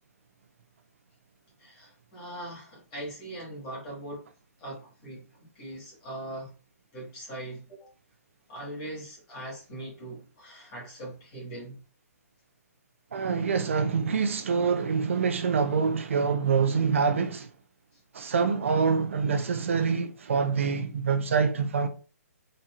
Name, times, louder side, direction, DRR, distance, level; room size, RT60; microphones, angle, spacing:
voice 1, 1.6-4.2 4.6-6.5 6.9-7.9 8.5-11.8, right 1 dB, 20° left, 1.6 m, -41 dB
voice 2, 13.1-17.5 18.1-21.9, right 5 dB, 50° right, 0.4 m, -25 dB
4.2 x 2.6 x 2.4 m
hypercardioid pair, 175°, 9 cm